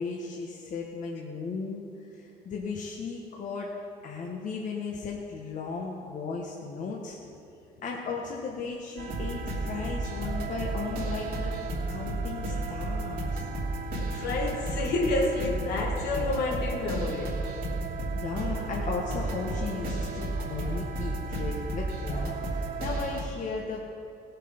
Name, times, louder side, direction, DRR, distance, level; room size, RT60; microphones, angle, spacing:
voice 1, 0.0-1.9 2.1-3.7 4.0-7.2 7.8-11.6 11.9-13.5 18.1-23.8, left 4 dB, 50° left, 1.3 m, -36 dB
sound 1, 9.0-23.2, right 2 dB, 65° right, 3.0 m, -32 dB
voice 2, 14.1-17.4, left 2 dB, 75° left, 1.7 m, -29 dB
17.5 x 7.5 x 5.3 m
cardioid pair, 110°, 17 cm